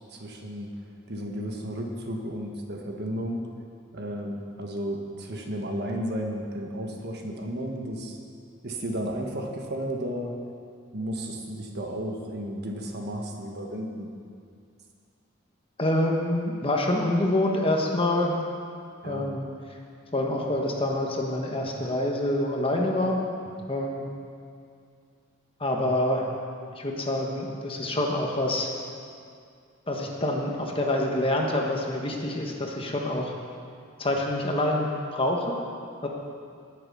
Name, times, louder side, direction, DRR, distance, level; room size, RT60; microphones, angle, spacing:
voice 1, 0.1-0.7 1.1-3.5 3.9-8.2 8.6-10.3 10.9-14.1 19.0-19.3, equal, 50° right, 2 dB, 1.4 m, -33 dB
voice 2, 15.8-18.3 19.0-19.4 20.1-23.2 23.7-24.0 25.6-26.3 26.7-28.7 29.9-33.3 34.0-35.6 36.0-36.1, left 1 dB, 25° left, 0 dB, 1.3 m, -26 dB
19.5 x 6.9 x 5.5 m, 2.3 s
head